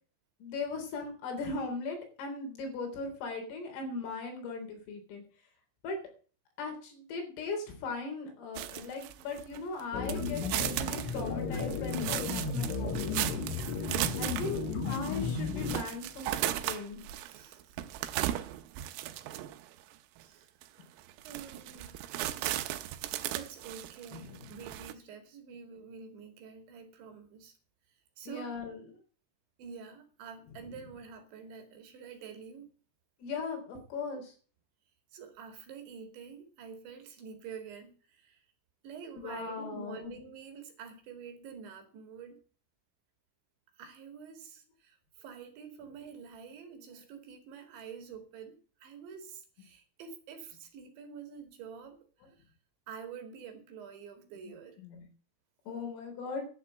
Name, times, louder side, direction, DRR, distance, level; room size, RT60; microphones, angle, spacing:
voice 1, 0.4-5.2 5.8-6.0 6.6-13.2 14.2-17.0 24.1-24.5 28.3-28.9 33.2-34.3 39.2-40.1 54.4-54.5 54.8-55.0 55.7-56.5, left 4 dB, 80° left, 3 dB, 6.3 m, -38 dB
sound 1, 8.6-9.8 10.1-19.7 20.2-20.3 20.6-20.7 21.1-24.9, right 14 dB, 90° right, 3.6 m, -36 dB
sound 2, 9.9-15.8, left 5 dB, 55° left, 2.2 m, -34 dB
voice 2, 14.2-14.6 17.2-17.8 20.2-20.5 21.2-22.1 23.4-27.5 28.2-28.5 29.6-32.7 35.1-38.4 38.8-42.4 43.7-52.4 52.9-54.8, right 6 dB, 65° right, 6 dB, 4.4 m, -47 dB
11.5 x 8.5 x 7.6 m, 0.40 s
omnidirectional pair, 5.9 m